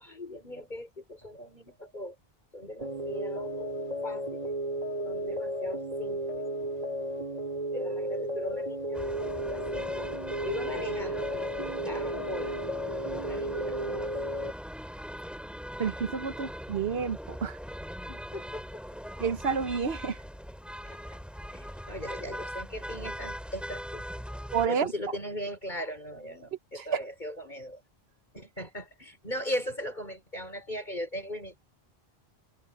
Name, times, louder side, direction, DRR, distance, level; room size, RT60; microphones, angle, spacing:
voice 1, 0.0-2.2 2.5-3.7 4.0-4.5 5.0-6.4 7.7-10.1 10.4-12.6 13.1-14.1 18.1-18.6 20.8-21.2 21.5-24.1 24.7-27.8 28.3-31.6, equal, 45° left, 5.9 m, -39 dB
sound 1, 2.8-14.5, right 1 dB, 35° right, 3.0 m, -33 dB
sound 2, 8.9-24.7, equal, ahead, 2.5 m, -40 dB
voice 2, 15.8-17.6 19.2-20.2 24.5-24.9 26.7-27.0, right 6 dB, 70° right, 1.2 m, -30 dB
omnidirectional pair, 1.1 m